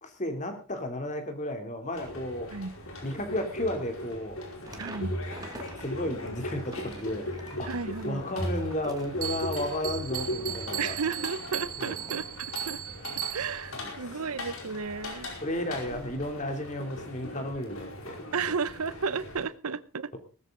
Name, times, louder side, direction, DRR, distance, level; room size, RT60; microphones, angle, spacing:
voice 1, 0.0-2.5 3.0-4.4 4.7-4.8 5.8-7.2 7.5-7.7 8.0-10.9 11.8-12.0 13.7-13.9 15.4-18.2, left 1 dB, 35° left, 6 dB, 3.0 m, -33 dB
sound 1, 1.9-19.4, left 1 dB, 65° left, 5.1 m, -38 dB
sound 2, 4.6-5.9 6.3-11.6 12.0-12.2, right 2 dB, 15° right, 2.4 m, -47 dB
voice 2, 4.8-5.2 7.6-8.2 10.8-12.8 13.3-15.4 18.3-20.2, right 5 dB, 75° right, 18 dB, 0.8 m, -33 dB
Bell, 9.2-13.7, right 13 dB, 40° right, 2.5 m, -37 dB
18.5 x 13.5 x 3.8 m, 0.34 s
head